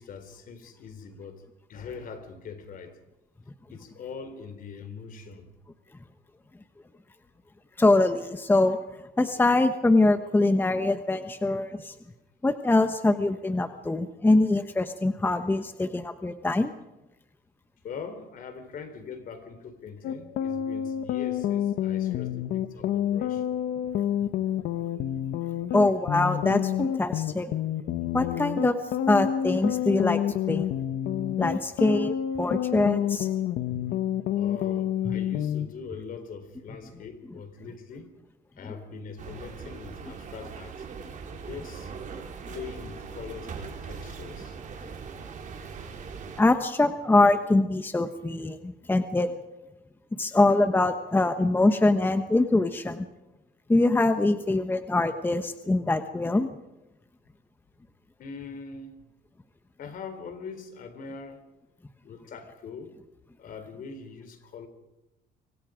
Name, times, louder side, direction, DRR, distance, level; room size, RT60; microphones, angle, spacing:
voice 1, 0.0-1.4 1.7-3.0 3.7-5.5 17.8-23.5 34.3-38.1 38.6-40.9 41.4-41.9 42.5-44.6 58.2-58.9 59.8-61.4 62.0-63.0 63.4-64.7, left 5 dB, 55° left, 9 dB, 4.1 m, -42 dB
voice 2, 7.8-8.8 9.2-11.9 12.4-16.7 25.7-27.5 28.1-28.8 29.1-30.2 30.5-30.6 31.4-33.3 33.7-33.8 46.4-49.3 50.1-53.0 53.7-56.5, left 2 dB, 10° left, 8 dB, 1.1 m, -23 dB
sound 1, 20.0-35.7, left 10 dB, 75° left, 1.2 m, -28 dB
sound 2, 39.2-46.4, right 6 dB, 50° right, 4.0 m, -40 dB
26.5 x 25.0 x 5.2 m, 0.98 s
cardioid pair, 110°, 17 cm